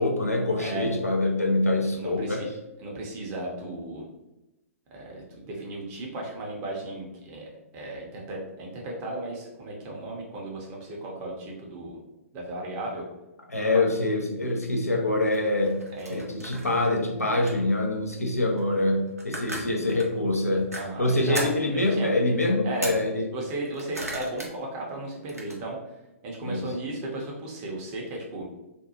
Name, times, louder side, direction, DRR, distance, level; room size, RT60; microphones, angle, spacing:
voice 1, 0.0-2.4 13.5-15.8 16.1-20.7 21.0-23.3 26.4-26.6, left 2 dB, 85° left, 1 dB, 0.5 m, -25 dB
voice 2, 0.6-0.9 1.9-2.5 2.8-4.1 4.9-12.0 12.3-13.1 13.5-13.8 16.0-16.3 19.5-19.6 20.7-22.1 22.6-23.0 23.3-25.8 26.2-28.4, right 2 dB, 30° right, -2 dB, 0.7 m, -35 dB
sound 1, 15.3-17.0 17.5-17.7 18.6-18.7 19.1-20.1 20.7-20.8 21.3-21.7 22.7-23.0 23.5-24.5 24.9-25.5, right 1 dB, 80° right, 0.7 m, -37 dB
2.6 x 2.2 x 2.8 m, 0.96 s
figure-of-eight pair, 115°, 8 cm